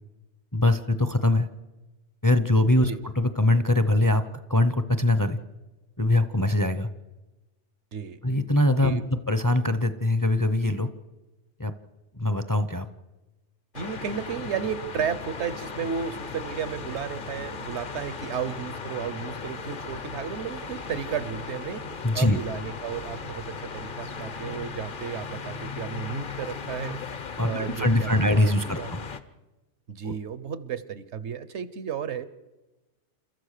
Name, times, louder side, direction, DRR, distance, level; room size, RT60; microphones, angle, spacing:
voice 1, 0.5-1.5 2.2-2.9 3.2-4.2 4.5-5.4 6.0-6.9 8.2-10.9 11.6-11.7 12.2-12.8 22.0-22.4 27.4-29.0 30.0-30.1, left 1 dB, 20° left, 11 dB, 0.7 m, -22 dB
sound 1, 13.7-29.2, left 5 dB, 50° left, 1.0 m, -37 dB
voice 2, 13.7-21.8 22.1-27.0 27.4-28.9 29.9-32.2, right 7 dB, 70° right, 15 dB, 1.2 m, -33 dB
29.0 x 13.5 x 6.7 m, 1.1 s
omnidirectional pair, 1.2 m